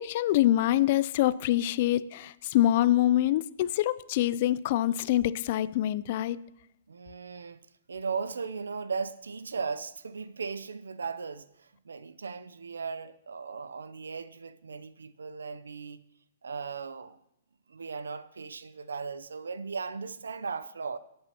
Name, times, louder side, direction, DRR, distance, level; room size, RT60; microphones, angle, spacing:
voice 1, 0.0-6.4, left 13 dB, 50° left, 0.4 m, -25 dB
voice 2, 6.9-16.0 16.4-17.2 17.7-21.0, right 5 dB, 85° right, 0.6 m, -37 dB
21.0 x 8.6 x 2.9 m
hypercardioid pair, 130°, 0 cm